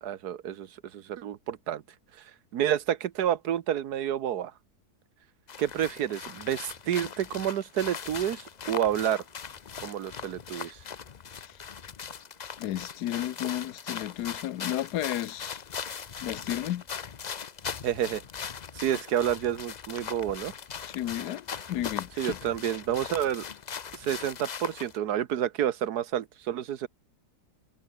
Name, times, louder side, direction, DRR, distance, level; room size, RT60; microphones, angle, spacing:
voice 1, 0.0-1.8 2.2-4.5 5.6-9.2 9.8-10.8 17.8-18.2 18.7-20.5 22.2-23.4 23.9-26.9, right 10 dB, 75° right, 1.5 m, -29 dB
sound 1, 5.5-25.0, left 7 dB, 50° left, 0.5 m, -40 dB
sound 2, 6.4-11.2 11.5-11.6, right 1 dB, 20° right, 7.6 m, -62 dB
voice 2, 12.6-15.6 16.2-16.8 20.8-22.4, left 13 dB, 80° left, 1.3 m, -33 dB
omnidirectional pair, 1.7 m